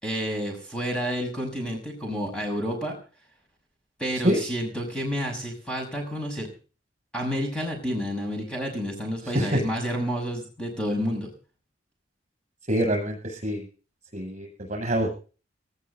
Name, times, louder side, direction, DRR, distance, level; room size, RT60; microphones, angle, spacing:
voice 1, 0.0-3.0 4.0-6.5 7.1-11.3, equal, 5° left, 1 dB, 6.5 m, -30 dB
voice 2, 9.2-9.6 12.7-13.6 14.1-15.1, equal, 40° right, 4 dB, 7.6 m, -25 dB
19.5 x 17.0 x 4.0 m, 0.38 s
head